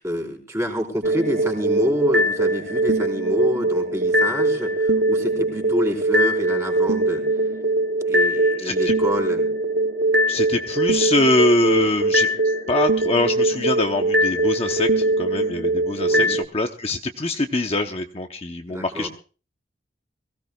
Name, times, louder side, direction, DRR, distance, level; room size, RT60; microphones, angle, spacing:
voice 1, 0.0-7.2 8.1-9.5 16.1-16.4 18.7-19.1, equal, 15° right, 2 dB, 4.3 m, -27 dB
sound 1, 1.0-16.4, right 1 dB, 65° right, 0.9 m, -21 dB
voice 2, 8.6-8.9 10.3-12.3 12.7-19.1, left 2 dB, 30° left, 4 dB, 0.9 m, -23 dB
23.5 x 17.0 x 2.4 m, 0.37 s
head